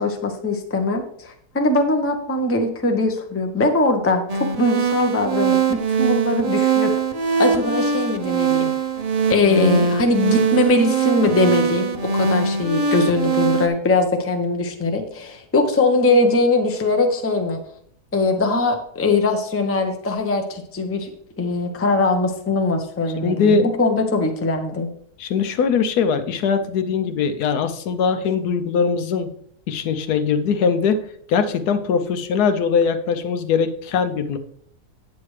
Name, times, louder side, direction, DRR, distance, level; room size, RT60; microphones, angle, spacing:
voice 1, 0.0-6.9 7.4-8.7 9.3-17.6 18.1-21.1 21.4-24.9, left 2 dB, 15° left, 4 dB, 0.6 m, -21 dB
sound 1, 4.3-13.7, right 5 dB, 50° right, 0.4 m, -21 dB
voice 2, 23.2-23.7 25.2-29.3 29.7-31.0 31.3-34.4, left 5 dB, 75° left, 8 dB, 1.2 m, -21 dB
8.8 x 8.3 x 3.2 m, 0.67 s
omnidirectional pair, 1.7 m